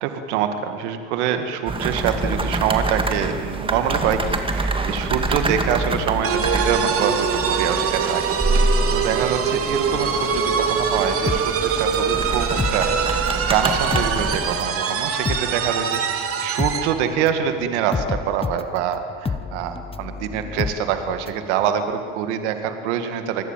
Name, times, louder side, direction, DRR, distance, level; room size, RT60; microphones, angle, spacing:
voice 1, 0.0-9.4 9.7-23.4, right 8 dB, 70° right, 7 dB, 2.1 m, -25 dB
sound 1, 1.7-14.6, right 2 dB, 15° right, 2.3 m, -26 dB
sound 2, 6.2-17.0, right 6 dB, 40° right, 3.0 m, -24 dB
sound 3, 11.3-13.5 13.8-21.5 21.8-21.9, left 5 dB, 15° left, 1.0 m, -29 dB
27.0 x 20.5 x 7.6 m, 2.3 s
hypercardioid pair, 90°, 35 cm